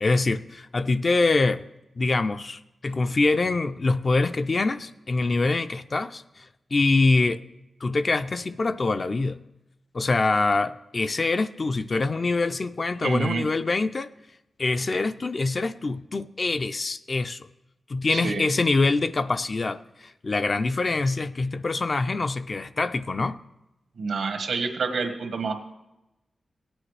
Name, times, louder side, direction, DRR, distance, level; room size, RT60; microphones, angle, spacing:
voice 1, 0.0-1.6 2.0-6.4 6.7-7.4 7.8-9.4 9.9-14.1 14.6-17.5 17.9-23.4, left 3 dB, 40° left, 0.4 m, -24 dB
voice 2, 13.0-13.5 18.1-18.4 24.0-25.7, right 4 dB, 90° right, 1.3 m, -28 dB
17.0 x 8.8 x 3.3 m
wide cardioid pair, 100°, 0 cm